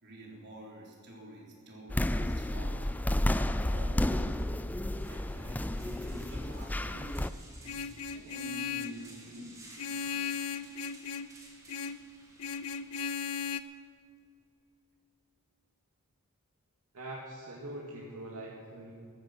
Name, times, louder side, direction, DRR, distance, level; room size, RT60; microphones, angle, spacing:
voice 1, 0.0-4.4 4.8-7.1 7.4-9.7, equal, 50° right, -2 dB, 3.7 m, -49 dB
sound 1, 1.9-7.3, left 1 dB, 5° left, 0.4 m, -31 dB
sound 2, 4.2-13.8, right 2 dB, 15° right, 3.2 m, -56 dB
Vehicle horn car horn honking, 7.7-9.0 9.8-11.3 11.7-12.0 12.4-13.6, left 6 dB, 75° left, 0.6 m, -36 dB
voice 2, 16.9-18.9, right 1 dB, 85° right, -3 dB, 2.0 m, -43 dB
14.5 x 13.5 x 5.9 m, 2.4 s
head